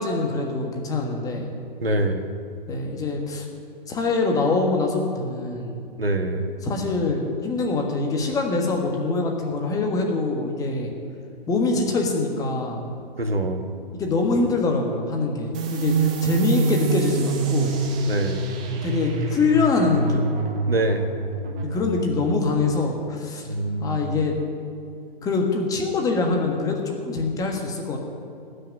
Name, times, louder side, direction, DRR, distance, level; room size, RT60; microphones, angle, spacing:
voice 1, 0.0-1.5 2.7-3.5 3.9-5.8 6.6-10.9 11.5-12.9 13.9-17.7 18.8-20.2 21.7-23.5 23.8-24.4 25.2-28.0, left 3 dB, 10° left, 2 dB, 1.5 m, -24 dB
voice 2, 1.8-2.2 6.0-6.5 13.2-13.7 18.1-18.4 20.7-21.0 23.5-24.0, right 2 dB, 80° right, 5 dB, 1.8 m, -24 dB
sound 1, 15.5-22.8, right 3 dB, 5° right, 0.3 m, -26 dB
18.5 x 6.5 x 9.0 m, 2.4 s
figure-of-eight pair, 125°, 30 cm